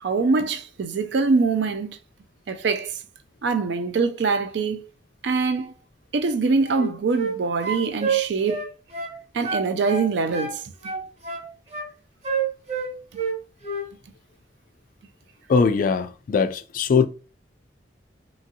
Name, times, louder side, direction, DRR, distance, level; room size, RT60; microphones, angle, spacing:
voice 1, 0.0-2.0 2.5-2.9 3.4-4.8 5.2-5.7 6.1-8.7 9.3-10.6, right 4 dB, 70° right, 0.4 m, -23 dB
sound 1, 6.6-7.4 7.6-9.2 9.4-10.6 10.8-11.9 12.2-13.4 13.6-13.9, right 5 dB, 40° right, 0.9 m, -28 dB
voice 2, 15.5-17.1, left 5 dB, 50° left, 0.3 m, -20 dB
2.8 x 2.6 x 2.7 m
head